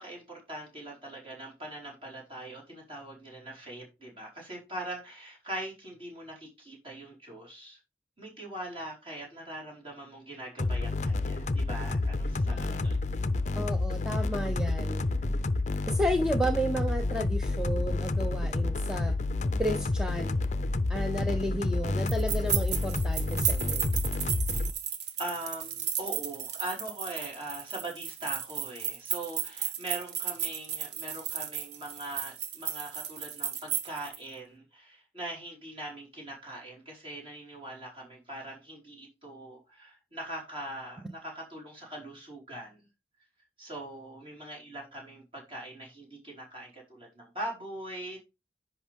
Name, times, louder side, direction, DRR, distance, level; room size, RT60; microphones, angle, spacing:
voice 1, 0.0-7.8 8.2-13.0 25.2-42.8 43.6-48.2, right 1 dB, 30° right, 4.8 m, -41 dB
sound 1, 10.6-24.7, left 2 dB, 40° left, 0.6 m, -29 dB
voice 2, 12.5-12.8 13.5-15.0 15.9-19.1 19.6-20.4 20.9-23.9, equal, 5° right, 0.7 m, -32 dB
sound 2, 22.1-34.2, right 9 dB, 70° right, 1.0 m, -34 dB
10.5 x 6.3 x 3.6 m
head